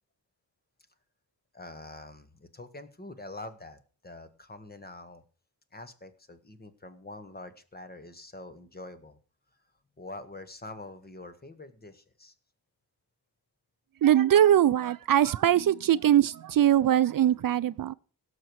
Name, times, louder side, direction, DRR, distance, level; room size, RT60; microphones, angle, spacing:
voice 1, 1.5-5.2 5.7-9.2 10.0-12.3, left 2 dB, 25° left, 1.3 m, -45 dB
voice 2, 14.0-17.9, right 11 dB, 60° right, 0.5 m, -22 dB
17.5 x 6.6 x 4.7 m
wide cardioid pair, 120°, 39 cm